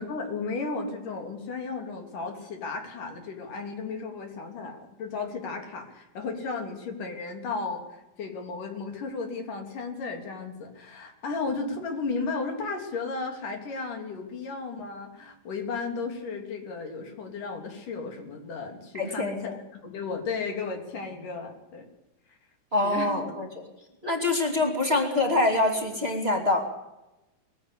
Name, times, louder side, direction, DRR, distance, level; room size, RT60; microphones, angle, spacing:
voice 1, 0.0-21.9 22.8-23.4, left 4 dB, 80° left, 3 dB, 4.9 m, -34 dB
voice 2, 18.9-19.6 22.7-23.5 24.0-26.7, left 2 dB, 20° right, 1 dB, 2.6 m, -25 dB
21.0 x 16.0 x 8.5 m, 0.97 s
omnidirectional pair, 3.7 m